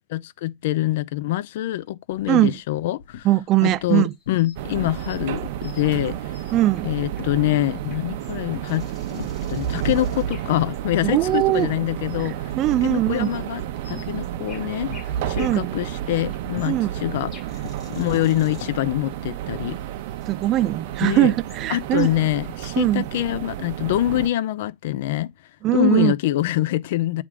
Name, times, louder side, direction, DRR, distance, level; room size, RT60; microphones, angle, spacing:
voice 1, 0.1-3.3 3.6-6.2 6.8-8.9 9.1-12.5 12.8-13.6 13.9-14.9 15.3-17.3 17.9-19.8 21.0-21.3 21.7-25.3 25.7-27.2, left 15 dB, 65° left, 0.5 m, -25 dB
sound 1, 2.1-2.3 2.6-3.3 3.7-4.5 4.8-5.1 5.4-8.2 8.5-9.5 9.9-10.3 10.6-10.8 11.2-11.8 12.1-13.4 14.0-14.4 14.9-15.4 15.7-18.9, left 10 dB, 90° left, 1.3 m, -40 dB
voice 2, 2.3-2.6 3.2-4.1 6.5-6.9 11.0-11.7 12.6-13.3 15.4-15.7 16.7-16.9 20.3-22.1 22.7-23.0 25.6-26.1, right 14 dB, 35° right, 0.3 m, -20 dB
sound 2, 3.8-11.6 12.1-23.0, left 5 dB, 25° left, 3.2 m, -52 dB
sound 3, 4.6-24.3, right 11 dB, 60° right, 0.8 m, -31 dB
8.7 x 3.5 x 4.8 m
supercardioid pair, 150°, 0 cm